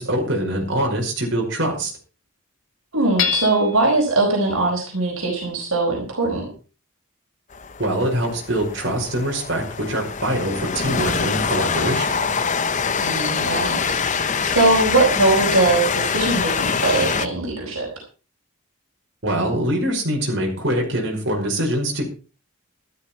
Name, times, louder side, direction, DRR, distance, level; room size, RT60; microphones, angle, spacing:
voice 1, 0.0-1.9 7.8-12.2 19.2-22.1, right 1 dB, 55° right, 0 dB, 5.4 m, -23 dB
voice 2, 2.9-6.4 13.0-13.8 14.1-17.9, right 2 dB, 75° right, 0 dB, 4.4 m, -21 dB
Hammer / Chink clink, 3.2-4.0, left 8 dB, 70° left, 2.4 m, -24 dB
Train, 7.5-17.3, left 5 dB, 35° left, 0.7 m, -24 dB
13.0 x 12.5 x 4.5 m, 0.36 s
head